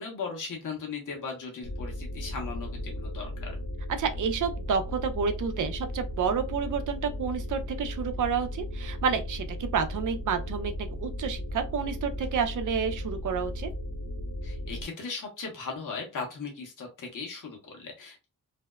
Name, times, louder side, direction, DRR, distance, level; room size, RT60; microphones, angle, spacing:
voice 1, 0.0-3.6 14.4-18.3, left 4 dB, 65° left, 1.1 m, -38 dB
sound 1, 1.6-14.9, left 1 dB, 50° left, 1.1 m, -36 dB
voice 2, 4.0-9.5 9.7-10.7 11.0-13.7, right 6 dB, 65° right, 0.6 m, -29 dB
2.6 x 2.1 x 2.2 m
cardioid pair, 70°, 33 cm